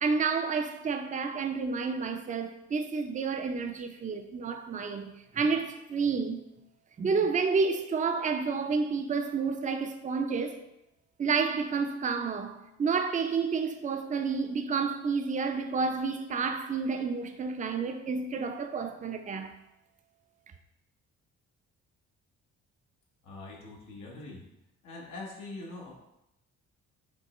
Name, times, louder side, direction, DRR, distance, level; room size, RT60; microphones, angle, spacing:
voice 1, 0.0-6.5 7.0-10.6 11.2-19.5, right 5 dB, 25° right, 0.4 m, -30 dB
voice 2, 23.2-24.4 24.8-26.0, left 2 dB, 85° left, 1.2 m, -43 dB
5.3 x 3.1 x 3.1 m
cardioid pair, 90°, 30 cm